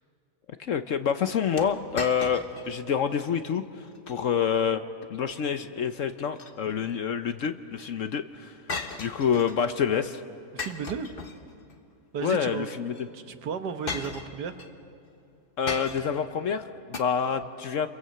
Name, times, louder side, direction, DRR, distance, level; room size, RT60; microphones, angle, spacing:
voice 1, 0.6-4.8 5.1-8.6 9.0-10.2 12.2-12.9 15.6-17.9, left 7 dB, 60° left, 10 dB, 1.0 m, -27 dB
sound 1, 1.6-2.8 3.1-3.2 3.8-4.2 6.1-7.0 8.7-9.7 10.6-11.8 12.9-13.0 13.9-14.7 15.7-16.3 16.9-17.0, left 4 dB, 35° left, 1.2 m, -37 dB
voice 2, 10.5-11.2 12.1-12.7 13.1-14.6, right 6 dB, 75° right, 9 dB, 1.7 m, -34 dB
28.0 x 22.5 x 7.8 m, 2.5 s
omnidirectional pair, 1.8 m